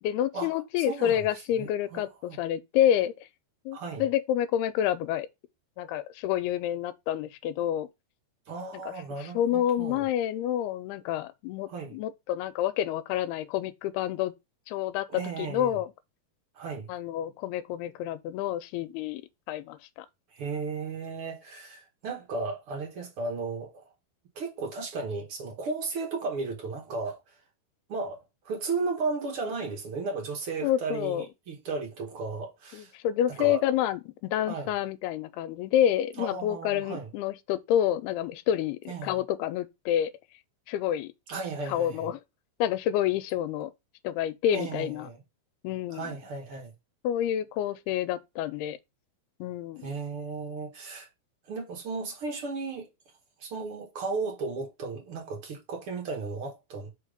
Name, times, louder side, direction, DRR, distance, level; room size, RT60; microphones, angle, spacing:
voice 1, 0.0-3.3 3.7-5.3 5.8-7.9 8.8-8.9 9.2-14.3 14.7-15.9 16.9-19.2 19.5-20.1 30.6-31.3 32.7-40.1 40.7-41.1 41.7-42.2 42.6-43.7 44.0-45.1 45.6-46.1 47.0-48.8 49.4-49.9, left 11 dB, 90° left, 2.6 m, -28 dB
voice 2, 0.8-1.2 1.5-2.4 3.7-4.1 8.5-10.1 11.7-12.0 15.1-15.8 16.5-16.9 20.3-23.9 24.4-27.3 27.9-28.2 28.4-32.9 33.4-33.6 34.5-34.7 36.2-37.1 38.9-39.2 41.3-42.1 44.5-45.2 45.9-46.7 49.8-51.1 51.5-52.9 53.4-56.9, right 4 dB, 50° right, 1.9 m, -35 dB
5.2 x 4.6 x 5.1 m
omnidirectional pair, 4.5 m